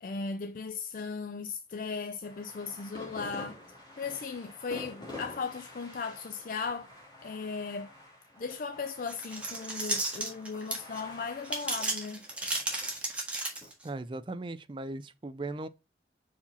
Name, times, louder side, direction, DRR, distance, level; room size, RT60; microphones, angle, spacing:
voice 1, 0.0-3.6 4.0-6.9 7.2-7.9 8.4-12.3, left 5 dB, 50° left, 0.4 m, -37 dB
sound 1, 2.2-13.7, left 2 dB, 25° left, 2.5 m, -48 dB
sound 2, 9.1-11.0 11.4-13.9, right 2 dB, 5° right, 1.5 m, -33 dB
voice 2, 13.8-15.7, right 2 dB, 30° right, 0.4 m, -38 dB
5.3 x 4.9 x 4.1 m
head